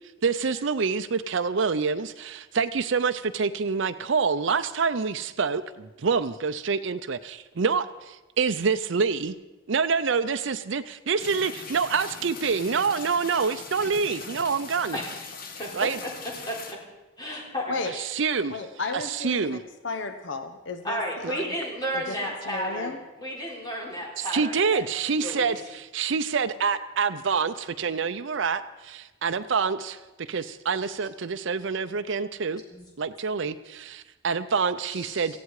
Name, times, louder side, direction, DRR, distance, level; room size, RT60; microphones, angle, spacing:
voice 1, 0.2-9.4 9.7-15.0 15.7-16.0 17.9-18.6 18.9-19.6 21.2-21.3 24.2-32.6 33.0-35.4, right 5 dB, 70° right, 8 dB, 0.6 m, -27 dB
sound 1, 11.2-16.7, left 4 dB, 45° left, 1.5 m, -41 dB
voice 2, 14.9-16.1 16.5-16.8 17.2-18.1 20.8-22.9 23.2-24.8 25.1-25.6 32.7-32.8 34.9-35.4, equal, 20° left, -2 dB, 3.7 m, -33 dB
voice 3, 18.5-21.5 21.9-23.0, left 3 dB, 65° left, 8 dB, 0.9 m, -34 dB
18.0 x 15.0 x 4.8 m, 1.1 s
head